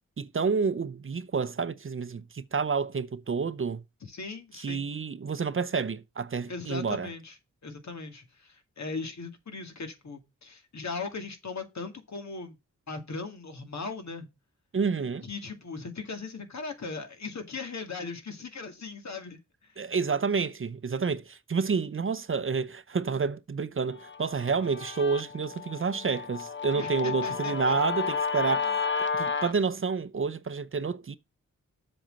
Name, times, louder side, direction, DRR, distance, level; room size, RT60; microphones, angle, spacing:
voice 1, 0.2-3.8 4.6-7.1 14.7-15.3 19.8-28.8 29.1-31.1, right 5 dB, 45° right, 0.7 m, -29 dB
voice 2, 4.0-4.8 6.5-7.4 7.6-12.6 12.9-14.3 15.2-19.4 26.8-27.8 28.6-28.7, left 4 dB, 65° left, 2.2 m, -38 dB
Guitar, 24.0-29.5, left 5 dB, 40° left, 1.0 m, -32 dB
7.6 x 4.3 x 6.5 m
wide cardioid pair, 80°, 29 cm